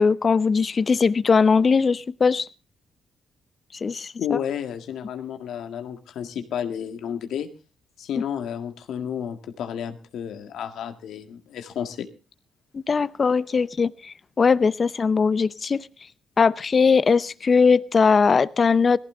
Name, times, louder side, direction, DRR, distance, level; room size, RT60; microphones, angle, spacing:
voice 1, 0.0-2.5 3.8-4.1 12.7-13.9 14.4-15.9 16.4-19.0, left 5 dB, 40° left, 0.7 m, -20 dB
voice 2, 4.2-7.5 8.0-12.1, left 8 dB, 80° left, 1.9 m, -31 dB
18.0 x 14.5 x 3.8 m
cardioid pair, 75°, 0 cm